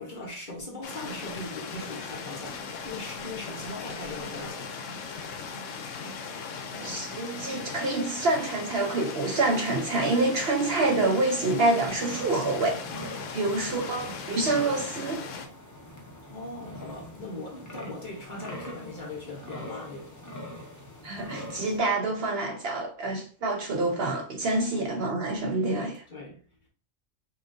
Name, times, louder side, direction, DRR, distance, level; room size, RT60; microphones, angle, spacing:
voice 1, 0.0-4.7 13.4-14.1 16.2-20.2 24.8-25.0 25.7-26.4, left 2 dB, 40° left, 1.1 m, -40 dB
sound 1, 0.8-15.5, left 5 dB, 75° left, 1.0 m, -38 dB
voice 2, 6.7-12.8 13.3-15.2 21.0-26.0, right 2 dB, 60° right, 0.8 m, -27 dB
sound 2, 11.8-21.8, left 1 dB, 20° left, 0.6 m, -43 dB
5.4 x 2.4 x 2.6 m
omnidirectional pair, 1.3 m